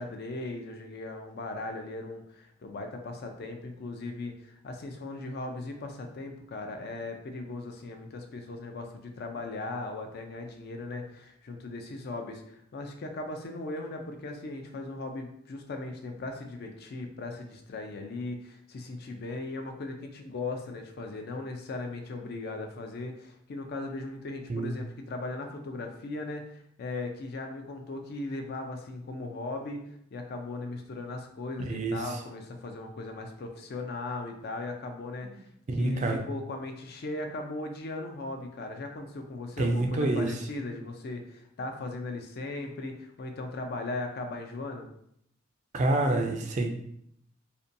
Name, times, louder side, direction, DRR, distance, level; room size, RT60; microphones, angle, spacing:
voice 1, 0.0-26.5 26.8-29.8 30.1-35.5 35.8-44.9, left 2 dB, 50° left, 4 dB, 0.4 m, -38 dB
voice 2, 31.6-32.2 35.7-36.2 39.6-40.4 45.7-46.7, right 2 dB, 35° right, 3 dB, 0.3 m, -27 dB
2.5 x 2.2 x 2.6 m, 0.71 s
head